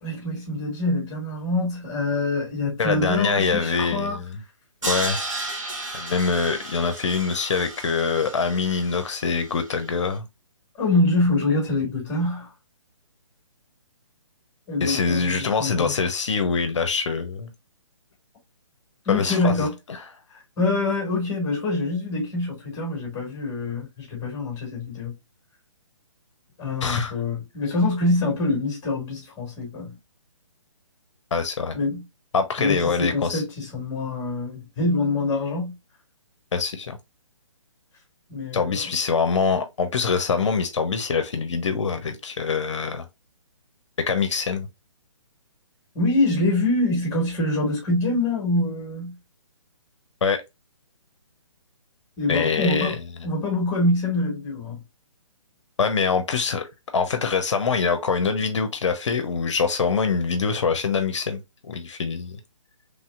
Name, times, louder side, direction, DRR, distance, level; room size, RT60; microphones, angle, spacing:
voice 1, 0.0-4.2 10.8-12.5 14.7-15.9 19.0-19.7 20.6-25.1 26.6-29.9 31.7-32.0 32.6-35.7 38.3-38.8 45.9-49.1 52.2-52.9 53.2-54.8, left 2 dB, 20° left, 1.5 m, -25 dB
voice 2, 2.8-4.4 4.8-5.2 5.9-10.3 14.8-17.5 19.1-20.0 26.8-27.1 31.3-31.7 32.3-33.4 36.5-37.0 38.5-43.1 44.0-44.7 50.2-50.4 52.3-53.0 55.8-62.4, left 5 dB, 65° left, 0.6 m, -24 dB
Crash cymbal, 4.8-9.9, right 2 dB, 70° right, 2.0 m, -33 dB
3.2 x 2.7 x 2.3 m
figure-of-eight pair, 140°, 17 cm